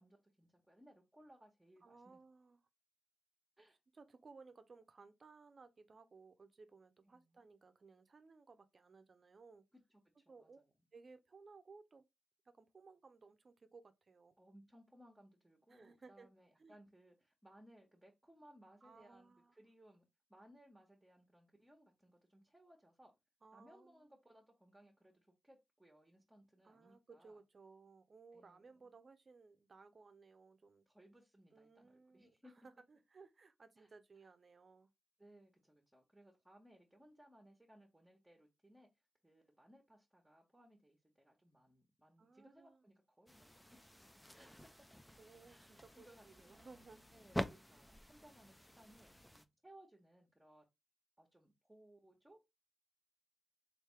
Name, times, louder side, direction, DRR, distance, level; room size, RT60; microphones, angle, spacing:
voice 1, 0.0-2.2 3.6-3.8 7.1-7.4 9.7-9.8 10.2-10.7 14.4-23.1 23.5-27.4 28.3-28.9 30.9-32.5 33.8-33.9 35.2-38.9 39.2-43.8 44.3-44.9 45.5-46.8 47.1-50.6 51.2-52.4, right 1 dB, 10° right, 1.2 m, -65 dB
voice 2, 1.8-2.6 3.9-9.7 10.3-10.6 10.9-12.0 12.4-14.3 15.7-16.3 16.6-16.8 18.8-19.5 23.4-24.1 26.6-30.9 31.5-34.9 42.2-42.8 45.2-47.1, right 4 dB, 45° right, 0.7 m, -61 dB
sound 1, 43.3-49.4, equal, 5° left, 0.5 m, -48 dB
3.4 x 2.7 x 4.4 m
cardioid pair, 65°, 0 cm